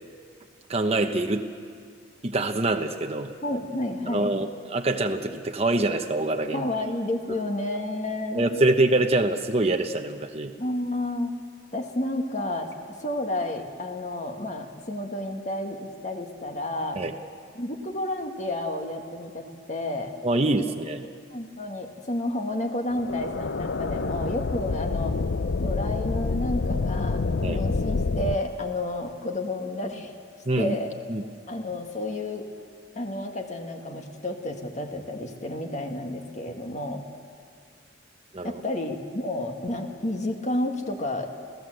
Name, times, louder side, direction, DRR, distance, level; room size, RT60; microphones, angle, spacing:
voice 1, 0.7-1.5 2.2-3.3 4.1-6.7 7.3-7.4 8.3-10.5 17.0-17.1 20.2-21.0 27.4-27.6 30.4-30.7 31.1-31.2 38.3-38.6, right 2 dB, 35° right, 5 dB, 0.9 m, -25 dB
voice 2, 3.4-4.3 6.5-8.4 10.6-11.3 11.7-12.7 13.0-17.0 17.6-20.1 21.3-25.1 25.6-27.2 27.5-30.1 30.6-30.9 31.5-32.5 33.0-37.0 38.4-41.3, left 1 dB, 40° left, 4 dB, 1.8 m, -31 dB
sound 1, 22.9-28.4, left 3 dB, 60° left, 0.6 m, -27 dB
29.5 x 16.0 x 7.9 m, 2.2 s
head